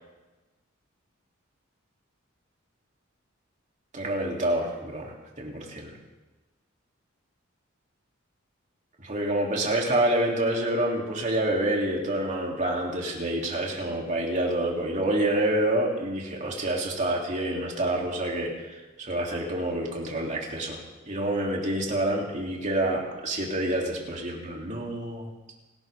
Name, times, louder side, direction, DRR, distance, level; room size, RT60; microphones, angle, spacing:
voice 1, 3.9-5.9 9.0-20.8 21.1-25.3, right 1 dB, 35° right, -2 dB, 3.5 m, -27 dB
29.0 x 12.5 x 3.8 m, 1.1 s
head